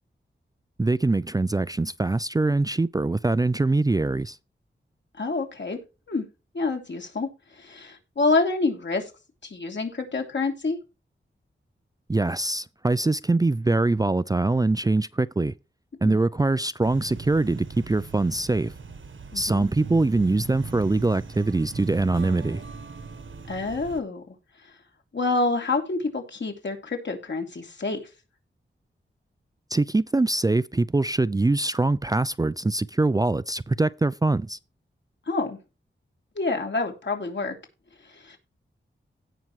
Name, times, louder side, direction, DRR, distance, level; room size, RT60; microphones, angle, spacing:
voice 1, 0.8-4.4 12.1-15.5 16.0-18.7 19.3-22.6 29.7-34.6, right 2 dB, 20° right, 0.4 m, -23 dB
voice 2, 5.2-5.8 6.1-6.2 6.5-7.3 7.5-9.1 9.4-10.8 16.0-16.2 19.3-19.6 23.5-24.3 25.1-28.0 35.3-35.6 36.3-37.5 38.1-38.4, left 3 dB, 65° left, 3.2 m, -27 dB
sound 1, 16.8-24.0, right 4 dB, 75° right, 1.6 m, -39 dB
17.0 x 6.0 x 3.2 m
wide cardioid pair, 70°, 20 cm